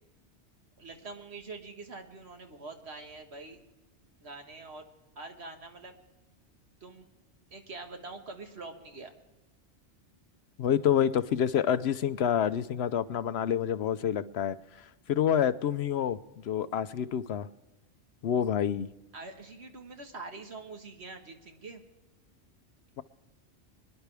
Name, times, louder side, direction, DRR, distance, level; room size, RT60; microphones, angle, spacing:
voice 1, 0.8-3.6 4.2-4.8 5.1-5.9 6.8-7.1 7.5-9.1 19.1-21.8, right 3 dB, 65° right, 4 dB, 1.8 m, -44 dB
voice 2, 10.6-17.5 18.2-18.9, left 9 dB, 70° left, 14 dB, 0.8 m, -28 dB
25.5 x 10.5 x 3.4 m, 1.1 s
omnidirectional pair, 1.2 m